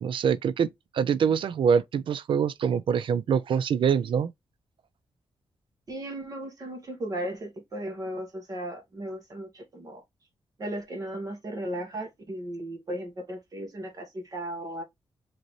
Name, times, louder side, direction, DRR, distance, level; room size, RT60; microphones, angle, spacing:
voice 1, 0.0-4.3, right 7 dB, 65° right, 0.4 m, -25 dB
voice 2, 5.9-10.0 10.6-14.8, right 1 dB, 40° right, 1.5 m, -36 dB
5.0 x 3.0 x 3.1 m
wide cardioid pair, 135°, 9 cm